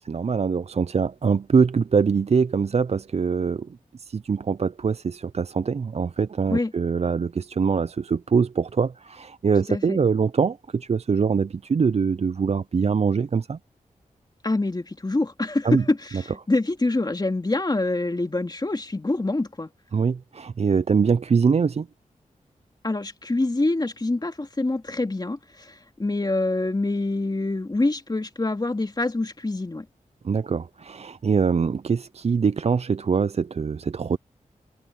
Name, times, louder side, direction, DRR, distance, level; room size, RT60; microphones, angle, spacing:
voice 1, 0.0-3.7 4.0-13.6 15.6-15.8 19.9-21.9 30.2-34.2, right 5 dB, 50° right, 0.5 m, -23 dB
voice 2, 14.4-19.7 22.8-25.7 26.0-29.9, left 2 dB, 30° left, 2.5 m, -25 dB
cardioid pair, 60°, 14 cm